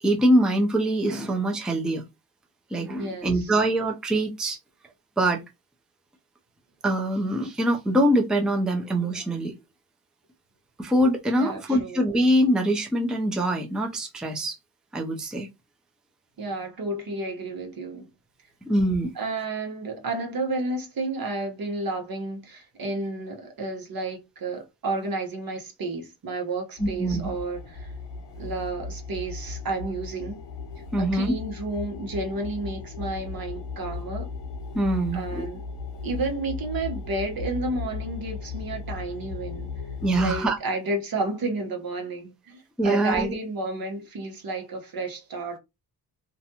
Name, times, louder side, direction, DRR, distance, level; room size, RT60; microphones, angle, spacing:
voice 1, 0.0-2.0 2.7-4.6 5.2-5.4 6.8-9.5 10.8-14.6 14.9-15.5 18.6-19.1 26.8-27.2 30.9-31.3 34.7-35.5 40.0-40.6 42.8-43.4, right 1 dB, ahead, 0.5 m, -23 dB
voice 2, 3.0-3.5 11.4-12.0 16.4-18.1 19.1-27.9 28.4-30.4 31.0-34.3 35.1-35.6 36.0-39.7 40.2-45.6, right 2 dB, 55° right, 1.1 m, -31 dB
sound 1, 26.8-40.4, left 4 dB, 75° left, 0.9 m, -36 dB
2.5 x 2.2 x 2.8 m
cardioid pair, 70°, 43 cm